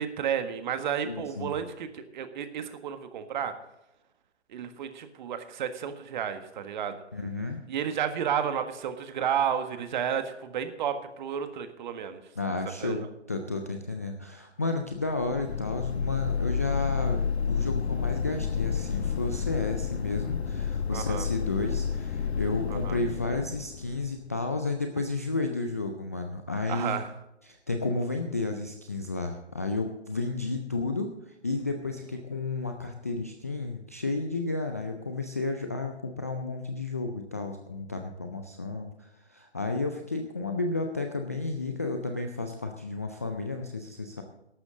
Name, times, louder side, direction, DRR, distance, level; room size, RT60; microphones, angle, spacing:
voice 1, 0.0-3.5 4.5-7.0 7.7-12.2 12.8-13.0 20.9-21.3 22.7-23.0 26.7-27.1, right 8 dB, 40° right, 9 dB, 1.6 m, -32 dB
voice 2, 1.0-1.5 7.1-7.6 12.4-27.0 27.5-44.2, left 3 dB, 15° left, 4 dB, 0.3 m, -32 dB
sound 1, 15.1-24.4, left 6 dB, 65° left, 1.3 m, -30 dB
14.0 x 12.0 x 3.8 m, 0.91 s
figure-of-eight pair, 135°, 35 cm